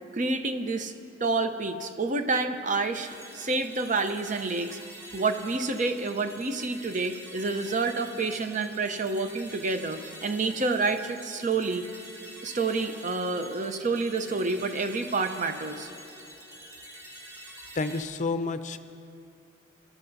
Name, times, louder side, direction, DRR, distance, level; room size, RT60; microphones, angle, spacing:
voice 1, 0.1-0.9 1.2-3.1 3.3-4.8 5.1-11.8 12.4-15.9, right 3 dB, 40° right, 7 dB, 0.7 m, -28 dB
sound 1, 2.9-18.0, equal, 15° right, 1.1 m, -46 dB
voice 2, 17.7-18.8, left 3 dB, 40° left, 10 dB, 0.5 m, -29 dB
24.0 x 13.0 x 2.7 m, 2.3 s
head